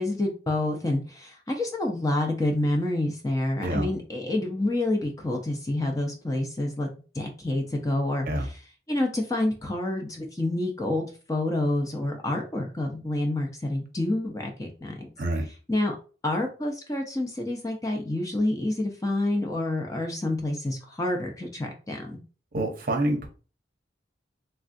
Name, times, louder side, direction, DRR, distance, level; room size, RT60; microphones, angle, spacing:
voice 1, 0.0-6.9 7.1-8.6 8.9-15.1 15.7-16.0 16.2-22.2, left 1 dB, 20° left, 1 dB, 0.5 m, -28 dB
voice 2, 22.5-23.3, right 1 dB, 50° right, 3 dB, 0.6 m, -27 dB
3.3 x 2.3 x 2.5 m, 0.35 s
head